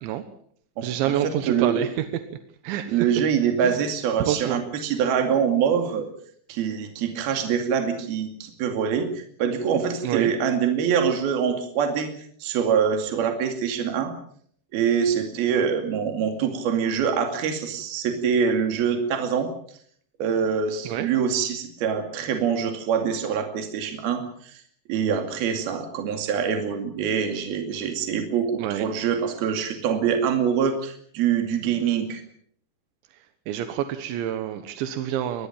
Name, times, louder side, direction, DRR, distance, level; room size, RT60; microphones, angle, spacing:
voice 1, 0.8-2.1 2.6-3.1 3.6-3.8 4.3-4.6 10.0-10.3 20.9-21.1 28.6-28.9 33.5-35.5, right 11 dB, 90° right, 9 dB, 3.6 m, -27 dB
voice 2, 1.5-1.8 2.9-6.1 6.5-12.1 12.4-14.1 14.7-19.5 20.2-24.6 24.9-32.2, right 7 dB, 60° right, 5 dB, 4.2 m, -24 dB
23.0 x 19.5 x 7.3 m, 0.62 s
omnidirectional pair, 5.1 m